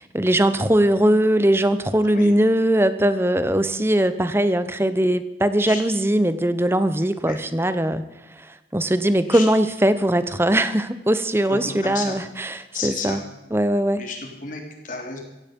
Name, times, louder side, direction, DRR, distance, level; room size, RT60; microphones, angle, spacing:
voice 1, 0.0-8.0 8.4-12.6 12.8-13.2 13.5-14.0, right 1 dB, 15° right, 12 dB, 0.9 m, -20 dB
voice 2, 11.5-12.2 12.7-13.3 13.9-15.2, left 4 dB, 45° left, 2 dB, 3.5 m, -32 dB
16.0 x 16.0 x 5.3 m, 0.97 s
head